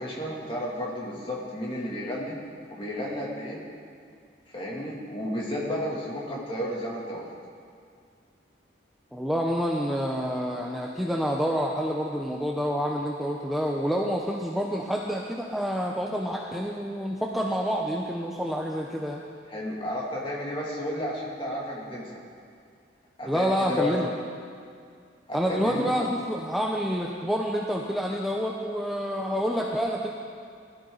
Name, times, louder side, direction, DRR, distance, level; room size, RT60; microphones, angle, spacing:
voice 1, 0.0-2.3 2.7-3.6 4.5-7.3 19.5-22.1 23.2-23.9 25.3-25.9, left 1 dB, 25° left, -4 dB, 2.7 m, -32 dB
voice 2, 9.1-19.2 23.3-24.1 25.3-30.1, equal, ahead, -2 dB, 0.8 m, -28 dB
20.5 x 13.5 x 4.0 m, 2.3 s
head